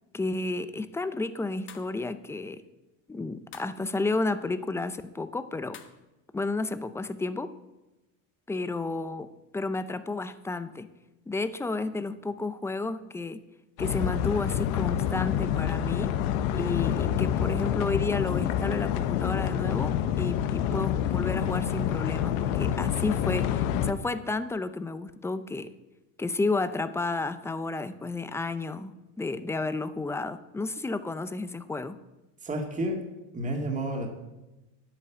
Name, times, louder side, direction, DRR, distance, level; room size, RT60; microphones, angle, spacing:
voice 1, 0.1-2.6 3.1-5.8 6.3-7.5 8.5-10.9 11.3-13.4 13.8-16.2 16.5-25.7 26.2-32.0, left 3 dB, 5° left, 12 dB, 0.5 m, -32 dB
sound 1, 1.7-2.0 3.5-3.8 5.7-6.1, left 8 dB, 30° left, 1.2 m, -47 dB
sound 2, 13.8-23.9, left 10 dB, 65° left, 1.0 m, -27 dB
voice 2, 32.4-33.0 33.3-34.1, right 1 dB, 20° right, 1 dB, 2.1 m, -30 dB
9.9 x 8.6 x 7.1 m, 1.0 s
supercardioid pair, 125°, 40 cm